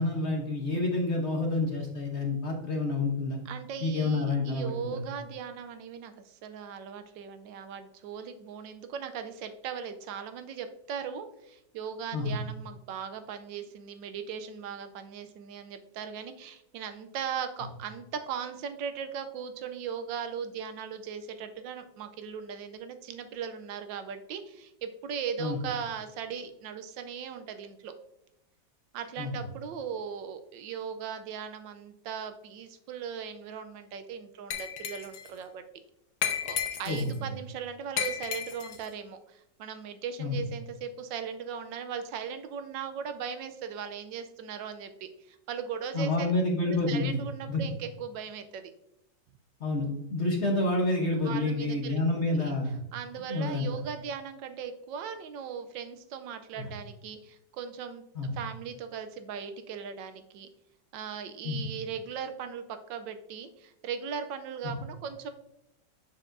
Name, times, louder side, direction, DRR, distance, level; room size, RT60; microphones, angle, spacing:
voice 1, 0.0-3.4 3.8-5.0 12.1-12.3 25.4-25.6 29.2-29.3 36.9-37.1 40.2-40.4 45.9-47.2 47.5-47.6 49.6-52.8 53.3-53.7 56.6-56.7 58.1-58.3 61.4-61.6 64.6-64.7, left 2 dB, 50° left, 0 dB, 0.9 m, -28 dB
voice 2, 3.5-27.9 28.9-35.6 36.4-46.3 46.7-48.7 51.2-52.0 52.3-52.6 52.9-58.0 58.3-60.5 60.9-65.3, right 7 dB, 75° right, 9 dB, 1.3 m, -38 dB
Glass, 34.5-35.3 36.2-37.2 38.0-38.9, left 9 dB, 80° left, 1.5 m, -33 dB
7.2 x 6.6 x 2.6 m, 0.81 s
omnidirectional pair, 2.1 m